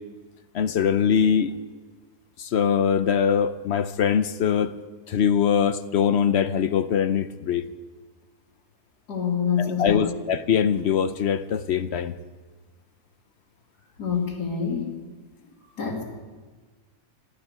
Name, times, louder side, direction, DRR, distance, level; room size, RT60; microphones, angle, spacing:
voice 1, 0.5-1.6 2.4-4.7 5.1-7.7 9.6-12.1, left 7 dB, 60° left, 12 dB, 0.7 m, -22 dB
voice 2, 9.1-10.1 14.0-14.8 15.8-16.0, left 6 dB, 85° left, 0 dB, 3.1 m, -26 dB
13.0 x 11.5 x 9.8 m, 1.4 s
omnidirectional pair, 1.7 m